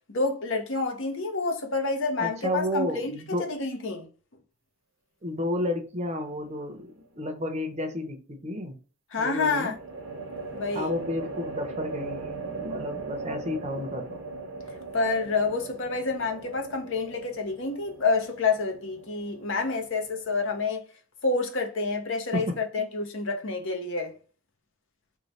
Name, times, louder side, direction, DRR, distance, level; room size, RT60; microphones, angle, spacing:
voice 1, 0.1-3.1 3.4-4.1 9.1-9.7 10.5-10.9 14.9-20.8 21.2-24.1, left 3 dB, 60° left, 0.7 m, -28 dB
voice 2, 2.2-3.5 5.2-8.7 9.2-9.8 10.7-14.2 22.3-22.5, left 1 dB, 30° right, 0.6 m, -32 dB
sound 1, 6.2-6.8 9.3-20.7, right 3 dB, 65° right, 0.7 m, -39 dB
3.1 x 2.2 x 4.0 m
head